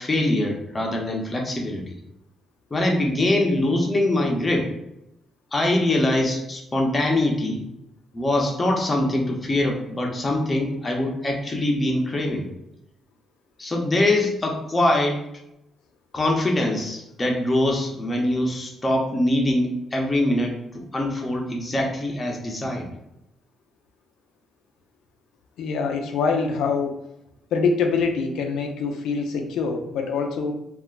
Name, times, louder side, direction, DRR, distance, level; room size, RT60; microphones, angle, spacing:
voice 1, 0.0-1.8 2.7-4.7 5.5-7.6 8.1-12.5 13.6-15.2 16.1-22.9, left 1 dB, 25° left, 0 dB, 0.7 m, -23 dB
voice 2, 25.6-27.0 27.5-30.5, left 5 dB, 85° left, 3 dB, 0.5 m, -24 dB
2.4 x 2.1 x 3.7 m, 0.84 s
cardioid pair, 90°, 0 cm